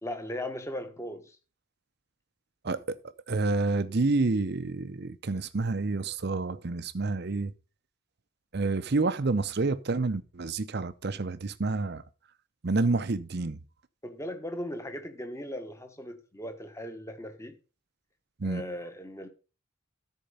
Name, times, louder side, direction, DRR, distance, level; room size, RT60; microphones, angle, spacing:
voice 1, 0.0-1.4 14.0-17.5 18.4-19.3, left 1 dB, 15° left, 1.2 m, -38 dB
voice 2, 2.6-3.0 3.3-7.5 8.5-12.0 12.6-13.6 18.4-18.6, right 3 dB, 50° right, 0.6 m, -28 dB
13.5 x 4.5 x 5.5 m
head